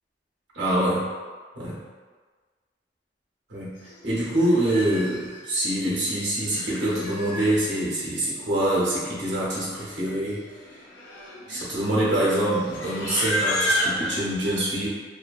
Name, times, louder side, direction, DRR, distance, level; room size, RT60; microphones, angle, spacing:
voice 1, 0.5-1.0 1.5-1.8 3.5-3.7 4.0-10.4 11.5-14.9, right 1 dB, 70° right, -7 dB, 0.9 m, -25 dB
Livestock farm animals working animals, 3.9-4.0 4.4-5.4 6.2-7.5 8.6-8.7 8.9-9.3 9.6-9.8 10.5-14.1, equal, 80° left, 0.5 m, -31 dB
2.6 x 2.1 x 2.4 m, 1.5 s
head